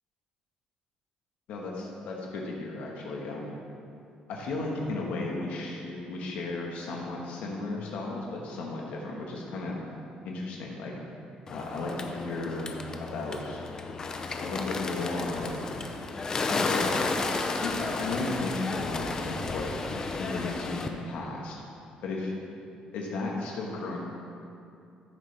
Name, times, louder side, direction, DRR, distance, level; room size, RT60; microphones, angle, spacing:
voice 1, 1.5-3.5 4.3-9.8 10.2-10.9 11.5-12.7 13.0-13.6 14.4-15.7 16.6-16.8 17.6-19.8 20.1-21.6 22.0-22.3 22.9-24.0, left 2 dB, 70° left, -2 dB, 1.5 m, -34 dB
Bird, 11.5-20.9, left 3 dB, 25° left, 0.6 m, -32 dB
13.5 x 7.0 x 3.4 m, 2.5 s
cardioid pair, 145°, 2 cm